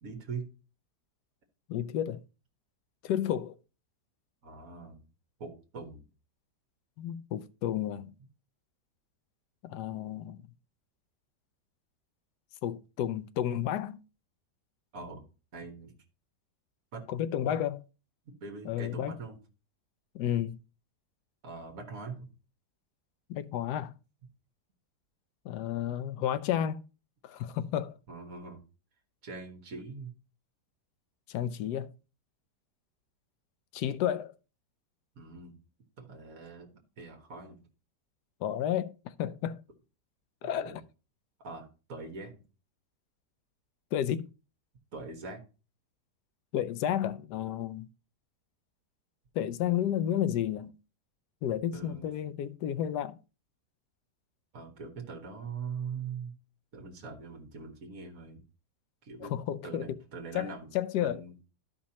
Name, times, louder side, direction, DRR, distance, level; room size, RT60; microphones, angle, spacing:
voice 1, 0.0-0.5 4.4-5.1 5.4-6.1 14.9-15.2 15.5-15.9 16.9-17.0 17.5-17.6 18.4-19.4 21.4-22.3 28.1-28.6 29.2-30.1 35.2-35.6 36.0-36.7 37.0-37.6 40.4-40.8 41.4-42.4 44.9-45.4 51.7-52.1 54.5-56.3 56.7-58.4 59.0-59.3 59.6-60.7 61.0-61.3, right 4 dB, 55° right, 1.8 m, -42 dB
voice 2, 1.7-2.2 3.0-3.6 7.0-8.1 9.6-10.4 12.6-14.0 17.1-17.8 18.6-19.1 20.1-20.6 23.3-23.9 25.4-26.8 27.2-28.0 31.3-31.9 33.7-34.3 38.4-39.6 40.4-40.8 43.9-44.3 46.5-47.9 49.3-50.7 51.4-53.2 59.2-60.0 60.3-61.2, left 10 dB, 80° left, 1.2 m, -31 dB
12.5 x 5.3 x 2.9 m
omnidirectional pair, 1.8 m